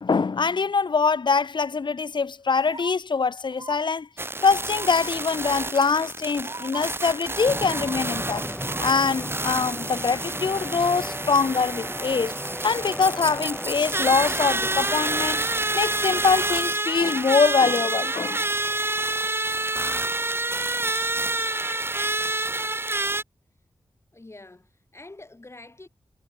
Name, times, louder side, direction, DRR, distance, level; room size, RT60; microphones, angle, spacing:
voice 1, 0.0-4.1 4.4-8.4 8.8-12.3 12.6-15.4 15.7-18.4, left 5 dB, 60° left, 1.2 m, -23 dB
sound 1, 2.6-2.9 3.5-3.8 4.7-5.1 6.0-6.1 6.4-6.8 7.6-8.9 9.2-9.3, right 3 dB, 45° right, 2.3 m, -41 dB
sound 2, 4.2-23.2, right 2 dB, 25° right, 1.5 m, -28 dB
sound 3, 7.5-15.3, equal, 5° left, 7.0 m, -36 dB
voice 2, 24.1-25.9, left 2 dB, 30° left, 6.7 m, -46 dB
cardioid pair, 65°, 9 cm